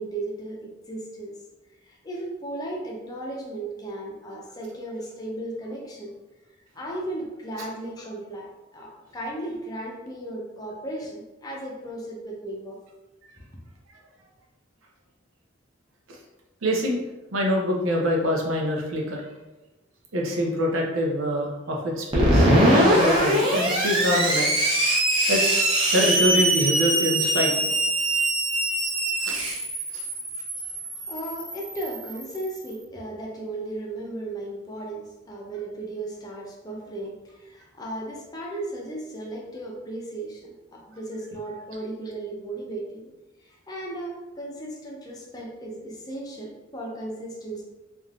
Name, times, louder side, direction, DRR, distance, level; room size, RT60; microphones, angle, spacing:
voice 1, 0.0-1.4 1.8-6.1 6.8-12.8 30.3-30.4 31.1-43.1 43.4-47.6, right 1 dB, 20° left, -2 dB, 0.5 m, -35 dB
voice 2, 16.6-17.0 17.3-19.2 20.1-24.5 25.3-25.5 25.9-27.5 29.2-29.4, equal, 90° right, 0 dB, 0.6 m, -25 dB
Screech, 22.1-32.6, right 1 dB, 25° right, 0.7 m, -23 dB
3.3 x 2.4 x 2.3 m, 1.0 s
head